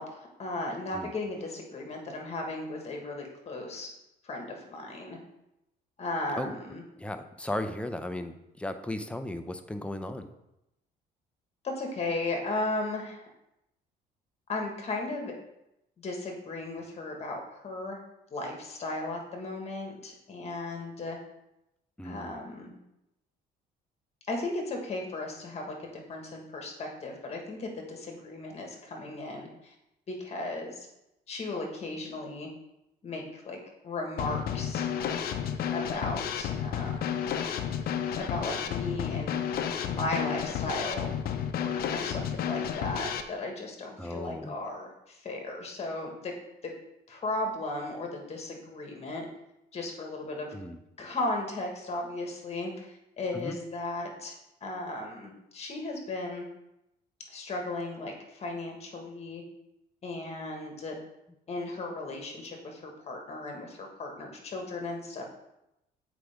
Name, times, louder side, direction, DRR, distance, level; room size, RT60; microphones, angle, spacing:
voice 1, 0.0-3.9 4.2-5.2 6.0-6.8 11.6-13.2 14.5-15.3 16.0-18.0 18.3-21.2 22.0-22.8 24.3-29.7 30.1-30.9 31.3-32.5 33.0-34.9 35.7-37.3 38.1-39.4 39.8-41.1 41.6-46.3 46.6-46.7 47.1-49.2 49.7-50.5 51.0-54.3 54.6-56.5 57.3-59.4 60.0-61.0 61.5-65.2, left 2 dB, 40° left, 2 dB, 1.6 m, -36 dB
voice 2, 7.0-10.3 22.0-22.4 44.0-44.5 50.5-50.8 53.3-53.6, left 1 dB, 5° left, 8 dB, 0.5 m, -36 dB
Drum kit / Snare drum, 34.2-43.2, left 8 dB, 65° left, 0.6 m, -31 dB
8.0 x 4.9 x 3.5 m, 0.88 s
cardioid pair, 110°, 17 cm